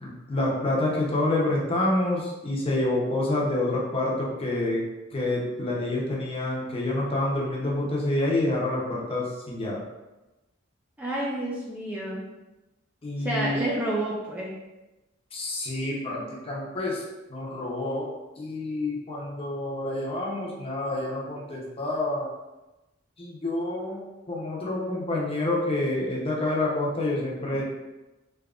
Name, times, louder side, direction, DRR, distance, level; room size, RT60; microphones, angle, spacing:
voice 1, 0.0-4.8 5.1-9.8 13.0-13.6 15.3-17.0 17.3-18.1 18.4-22.3 23.2-27.6, left 2 dB, 30° left, -4 dB, 0.7 m, -28 dB
voice 2, 11.0-12.2 13.2-14.6, right 1 dB, 10° right, -6 dB, 0.4 m, -29 dB
3.5 x 2.9 x 2.4 m, 1.0 s
head